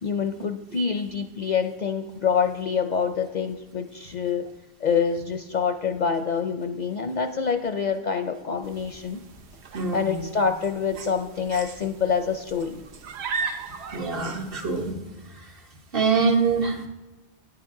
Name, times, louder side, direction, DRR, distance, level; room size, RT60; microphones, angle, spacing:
voice 1, 0.0-4.5 4.8-9.2 9.9-12.8, left 6 dB, 55° left, 8 dB, 0.5 m, -26 dB
sound 1, 8.6-14.9, right 5 dB, 85° right, 1.0 m, -37 dB
voice 2, 9.7-10.3 13.9-15.0 15.9-16.8, right 4 dB, 60° right, 2 dB, 1.3 m, -24 dB
9.4 x 8.9 x 3.7 m, 1.1 s
omnidirectional pair, 1.1 m